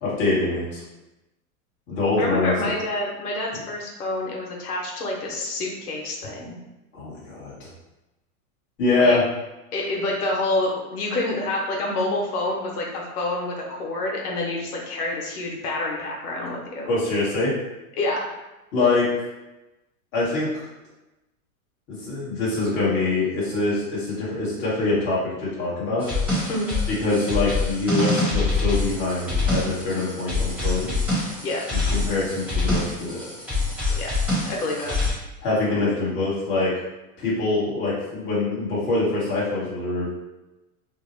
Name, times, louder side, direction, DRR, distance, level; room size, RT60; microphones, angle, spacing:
voice 1, 0.0-0.8 1.9-2.5 3.5-3.6 6.9-7.7 8.8-9.2 16.9-17.5 18.7-19.2 20.1-20.6 21.9-26.1 26.9-31.1 31.7-33.3 35.4-36.7 37.2-40.2, left 3 dB, 25° left, -7 dB, 1.0 m, -24 dB
voice 2, 2.2-6.6 9.0-9.2 9.7-16.9 18.0-18.3 26.5-26.7 31.4-31.7 33.9-34.2 34.5-35.0, left 2 dB, 90° left, -1 dB, 1.0 m, -27 dB
sound 1, 26.0-35.1, left 2 dB, 5° right, 0.8 m, -25 dB
2.7 x 2.1 x 4.0 m, 0.99 s
supercardioid pair, 155°, 44 cm